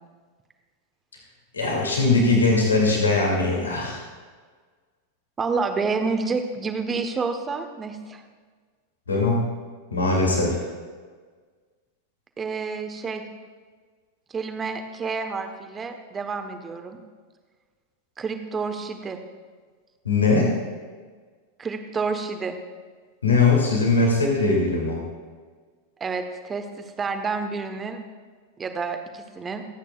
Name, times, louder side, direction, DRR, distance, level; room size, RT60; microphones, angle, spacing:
voice 1, 1.5-4.0 9.1-9.4 9.9-10.6 20.0-20.5 23.2-25.0, left 3 dB, 75° left, -1 dB, 2.7 m, -20 dB
voice 2, 5.4-8.2 12.4-13.2 14.3-17.0 18.2-19.2 21.6-22.5 26.0-28.0 28.6-29.6, right 4 dB, 20° right, 6 dB, 1.2 m, -29 dB
26.0 x 8.9 x 2.5 m, 1.5 s
figure-of-eight pair, 90°, 0 cm